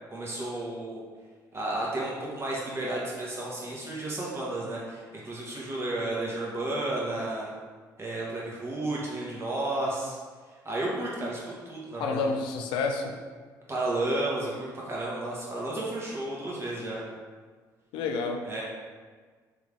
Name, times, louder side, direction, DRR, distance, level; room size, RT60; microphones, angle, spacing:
voice 1, 0.1-1.0 1.5-7.5 8.0-10.2 10.6-12.2 13.7-17.0 18.4-18.6, right 2 dB, 30° right, -5 dB, 1.5 m, -32 dB
voice 2, 12.0-13.2 17.9-18.5, left 4 dB, 80° left, 4 dB, 0.4 m, -29 dB
3.5 x 3.4 x 3.5 m, 1.5 s
supercardioid pair, 65°, 8 cm